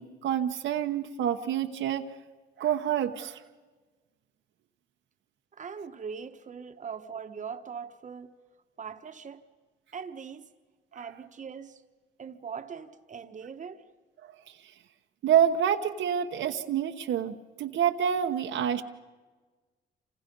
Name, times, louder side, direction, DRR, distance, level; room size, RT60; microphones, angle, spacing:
voice 1, 0.0-2.0 2.6-3.4 10.9-11.1 14.2-14.7 15.2-18.8, right 9 dB, 75° right, 1.0 m, -28 dB
voice 2, 5.5-8.3 8.8-9.4 9.9-10.5 10.9-11.8 12.2-13.9, right 6 dB, 40° right, 1.2 m, -41 dB
28.0 x 26.5 x 5.4 m
cardioid pair, 90°, 20 cm